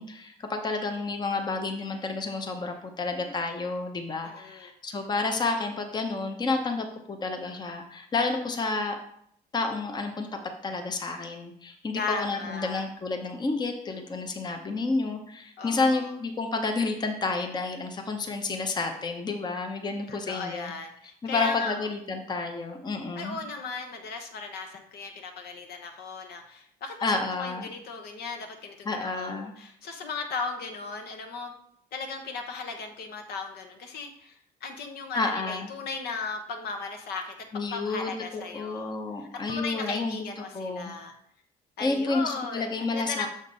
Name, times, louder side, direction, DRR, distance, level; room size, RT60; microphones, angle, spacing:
voice 1, 0.0-9.0 9.5-10.3 10.6-20.7 21.2-23.4 27.0-27.7 28.8-29.5 35.1-35.7 37.5-40.2 40.5-40.9 41.8-43.3, left 3 dB, 25° left, 5 dB, 0.8 m, -30 dB
voice 2, 4.2-4.7 12.0-12.8 15.6-16.1 20.1-21.9 23.2-31.5 31.9-41.1 41.8-43.3, left 4 dB, 70° left, 4 dB, 1.1 m, -37 dB
6.4 x 5.2 x 4.0 m, 0.69 s
cardioid pair, 110°, 17 cm